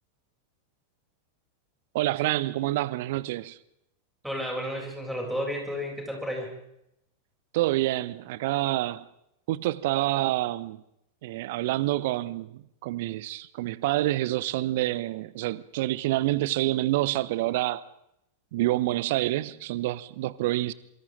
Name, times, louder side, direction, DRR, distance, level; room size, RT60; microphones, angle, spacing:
voice 1, 1.9-3.6 7.5-9.1 9.5-10.8 11.2-17.8 18.5-20.7, right 16 dB, 50° right, 0.9 m, -27 dB
voice 2, 4.2-6.5, equal, ahead, 7.7 m, -32 dB
27.0 x 25.0 x 3.9 m
figure-of-eight pair, 90°, 0 cm